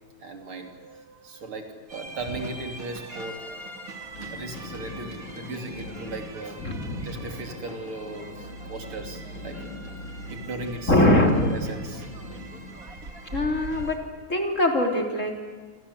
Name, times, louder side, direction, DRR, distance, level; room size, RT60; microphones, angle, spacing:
voice 1, 0.2-6.6 7.0-9.7 10.3-10.9 11.4-12.1, right 2 dB, 75° right, 4 dB, 3.9 m, -37 dB
sound 1, 1.9-14.0, right 2 dB, 40° right, 2.8 m, -42 dB
sound 2, 3.9-13.4, left 1 dB, 70° left, 5.2 m, -41 dB
voice 2, 6.6-7.1 10.9-11.5 13.3-14.0 14.3-15.5, left 1 dB, 35° left, 2 dB, 3.9 m, -22 dB
28.0 x 26.0 x 8.2 m, 1.5 s
omnidirectional pair, 2.4 m